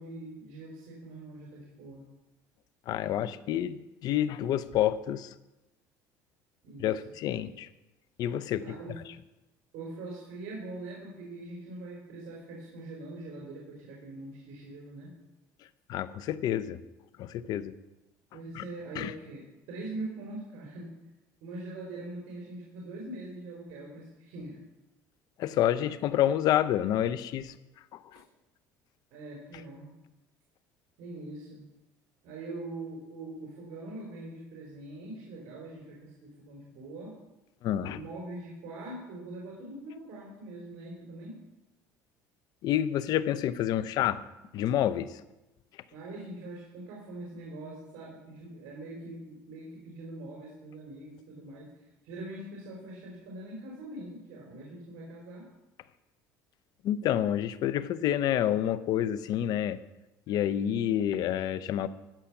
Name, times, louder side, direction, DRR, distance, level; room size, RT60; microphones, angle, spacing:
voice 1, 0.0-2.1 6.6-6.9 8.6-9.0 9.7-15.1 18.3-19.4 19.7-20.9 21.4-24.6 29.1-29.9 31.0-31.6 32.2-37.1 37.9-41.3 45.9-51.7 52.0-55.5, right 2 dB, 70° right, -3 dB, 3.8 m, -42 dB
voice 2, 2.9-3.8 4.0-5.3 6.8-7.7 8.2-8.6 15.9-16.8 17.2-17.7 18.5-18.6 19.0-19.1 25.4-27.6 27.9-28.2 37.6-38.0 42.6-44.2 44.5-45.2 56.8-59.8 60.3-61.9, left 11 dB, 60° left, 15 dB, 0.7 m, -28 dB
13.5 x 5.8 x 7.1 m, 1.0 s
cardioid pair, 120°, 8 cm